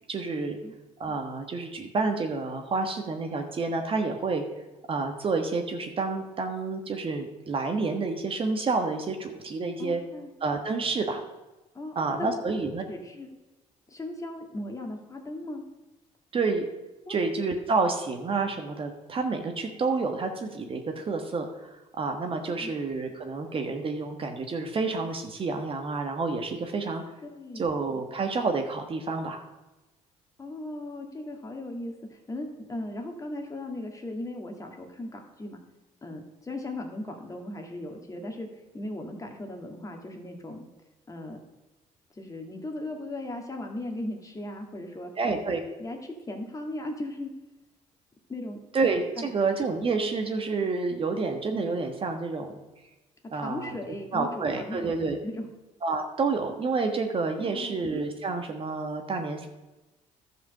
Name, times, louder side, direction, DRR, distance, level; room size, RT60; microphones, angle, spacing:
voice 1, 0.1-0.6 1.0-4.4 4.9-10.0 10.4-11.2 11.9-12.8 16.3-16.7 17.1-21.7 22.0-27.0 27.5-29.4 45.2-45.6 48.7-52.5 53.3-53.8 54.1-55.2 55.8-59.5, right 4 dB, 40° right, 5 dB, 1.3 m, -29 dB
voice 2, 9.8-10.3 11.7-13.3 13.9-15.6 17.1-17.2 22.6-22.7 27.2-27.7 30.4-35.6 36.0-38.5 38.7-40.6 41.1-41.4 42.1-45.1 45.8-47.3 48.3-48.6 49.2-49.3 53.4-54.9 55.2-55.5 57.4-57.8, left 1 dB, 25° left, 3 dB, 1.9 m, -37 dB
11.5 x 5.1 x 6.5 m, 1.1 s
cardioid pair, 95°, 14 cm